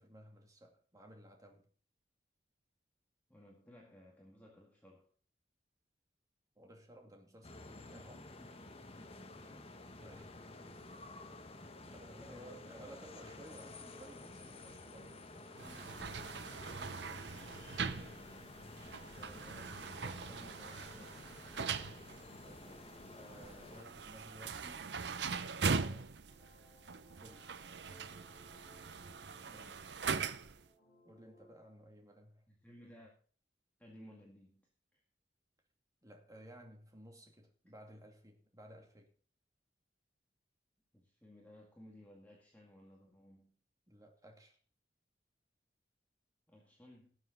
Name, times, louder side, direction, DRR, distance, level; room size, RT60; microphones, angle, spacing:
voice 1, 0.0-1.7 6.6-8.3 10.0-10.9 11.8-16.2 22.4-24.9 25.3-26.2 27.2-27.5 31.0-32.5 36.0-39.1 43.9-44.6, equal, 20° right, 2.5 m, -57 dB
voice 2, 3.3-5.1 8.4-8.6 9.0-9.7 12.1-13.1 18.7-21.3 29.4-29.9 32.5-33.1 33.8-35.0 40.9-43.6 46.5-47.1, left 1 dB, 10° left, 2.0 m, -59 dB
sound 1, 7.4-23.8, left 2 dB, 35° left, 1.4 m, -52 dB
sound 2, 15.6-30.6, right 5 dB, 70° right, 0.7 m, -41 dB
sound 3, 22.4-31.5, right 1 dB, 55° left, 4.9 m, -65 dB
18.5 x 7.4 x 4.0 m
head